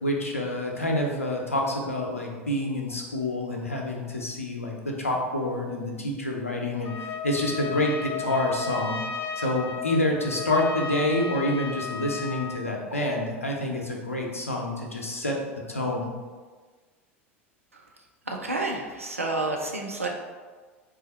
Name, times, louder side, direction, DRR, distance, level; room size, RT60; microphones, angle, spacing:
voice 1, 0.0-9.0 9.4-15.4 15.7-16.1, left 1 dB, 90° left, 0 dB, 0.6 m, -27 dB
Trumpet, 6.8-12.7, left 5 dB, 35° left, 0.3 m, -34 dB
voice 2, 18.3-20.1, right 2 dB, 90° right, 1 dB, 0.5 m, -30 dB
4.0 x 2.5 x 4.0 m, 1.4 s
figure-of-eight pair, 80°, 7 cm